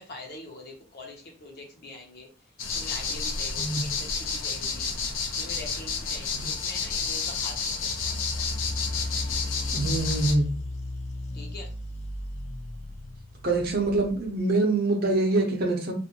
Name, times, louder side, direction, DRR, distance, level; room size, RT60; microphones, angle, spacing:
voice 1, 0.0-2.3 2.7-4.9 5.4-8.5 11.3-11.7, left 2 dB, 55° left, 1 dB, 0.7 m, -44 dB
sound 1, 2.6-10.4, left 5 dB, 85° left, 0.5 m, -30 dB
sound 2, 7.9-14.4, left 1 dB, 35° left, 0.3 m, -35 dB
voice 2, 9.7-10.5 13.4-15.9, right 2 dB, 55° right, 2 dB, 0.7 m, -25 dB
2.5 x 2.1 x 2.8 m, 0.40 s
head